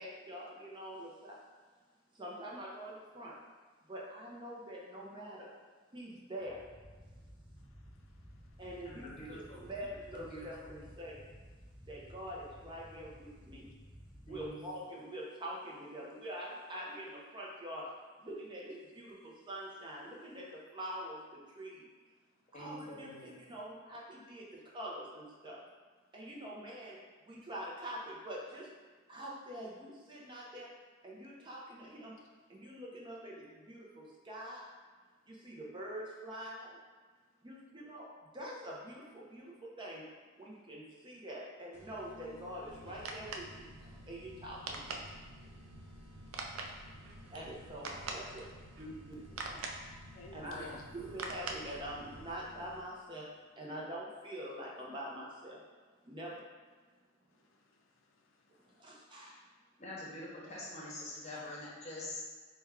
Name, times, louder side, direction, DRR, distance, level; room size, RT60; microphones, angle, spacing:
voice 1, 0.0-1.4 2.1-3.4 3.9-5.6 5.9-6.7 8.6-11.2 11.9-13.7 14.3-21.9 22.5-25.7 26.1-28.7 29.1-30.7 31.0-32.2 32.5-34.6 35.3-36.8 37.4-40.1 40.4-45.1 47.3-50.0 50.3-55.6 56.0-56.4 58.8-59.4, equal, 25° right, -3 dB, 0.5 m, -45 dB
sound 1, 6.4-14.5, equal, 5° right, 0.9 m, -55 dB
voice 2, 7.6-8.6 45.9-46.3 46.6-47.3 50.1-50.9 57.3-58.8, left 2 dB, 75° left, 1 dB, 0.5 m, -57 dB
voice 3, 8.8-9.7 10.1-10.8 14.3-14.6 22.5-23.3 59.8-62.2, left 1 dB, 35° left, -5 dB, 0.9 m, -45 dB
sound 2, 41.7-53.1, left 1 dB, 60° right, 0.7 m, -56 dB
sound 3, 42.7-52.3, right 3 dB, 90° right, 0.4 m, -46 dB
4.3 x 2.2 x 3.5 m, 1.4 s
head